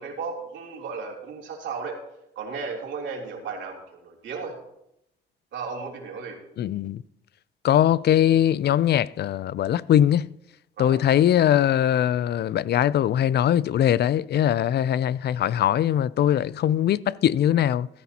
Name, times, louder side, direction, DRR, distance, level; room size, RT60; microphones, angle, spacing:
voice 1, 0.0-2.0 2.3-4.5 5.5-6.4 10.8-11.0, right 5 dB, 70° right, 3.3 m, -34 dB
voice 2, 6.6-7.0 7.6-10.3 10.8-17.9, left 11 dB, 55° left, 0.4 m, -21 dB
15.5 x 13.5 x 2.9 m
cardioid pair, 90°, 20 cm